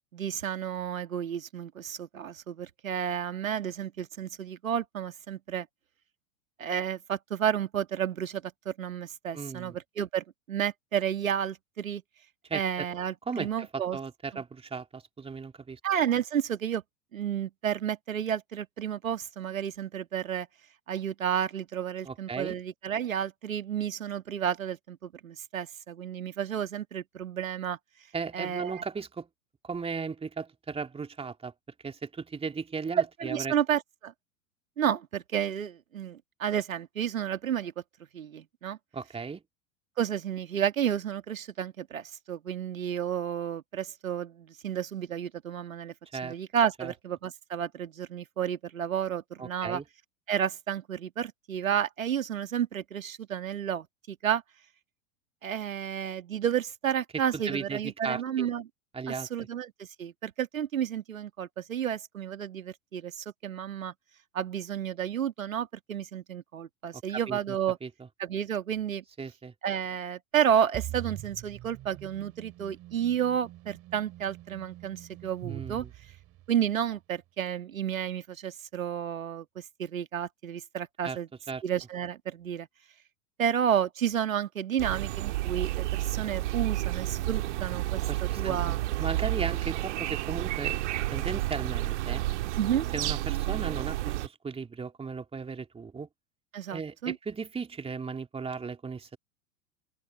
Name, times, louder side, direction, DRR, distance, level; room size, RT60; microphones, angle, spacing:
voice 1, 0.1-5.7 6.6-12.0 12.5-14.0 14.3-14.4 15.8-16.8 17.1-20.5 20.9-27.8 28.3-28.8 33.0-34.1 34.8-37.7 38.1-38.8 40.0-45.9 46.2-49.8 50.3-54.4 55.4-58.6 59.1-63.9 64.3-67.8 68.2-69.0 69.6-75.8 76.5-81.3 81.6-82.7 83.4-88.8 92.6-92.9 96.5-97.2, right 9 dB, 70° right, 2.1 m, -31 dB
voice 2, 9.3-9.8 12.5-12.9 13.3-15.8 22.0-22.6 28.1-29.3 29.6-31.5 31.8-33.5 38.9-39.4 46.1-46.4 46.8-46.9 49.4-49.8 57.3-58.5 58.9-59.5 67.1-67.9 69.2-69.5 75.4-75.9 81.0-81.2 81.5-81.6 88.1-88.6 89.0-90.8 91.1-92.2 92.9-96.1 96.7-99.2, right 5 dB, 15° right, 2.5 m, -36 dB
sound 1, 70.7-76.7, right 15 dB, 35° right, 2.6 m, -43 dB
sound 2, 84.8-94.3, right 16 dB, 55° right, 1.9 m, -31 dB
open air
figure-of-eight pair, 90°, 42 cm